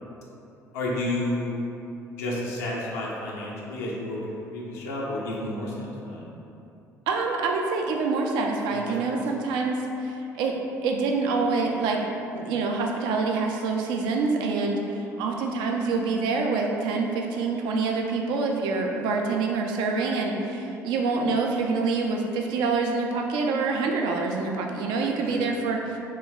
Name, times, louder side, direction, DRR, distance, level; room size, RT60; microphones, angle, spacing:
voice 1, 0.7-1.6 2.2-6.2 9.1-9.2 25.2-25.5, left 1 dB, 75° left, -4 dB, 0.6 m, -31 dB
voice 2, 7.1-25.8, right 4 dB, 60° right, 1 dB, 0.4 m, -26 dB
3.0 x 2.2 x 3.5 m, 2.8 s
figure-of-eight pair, 55°, 9 cm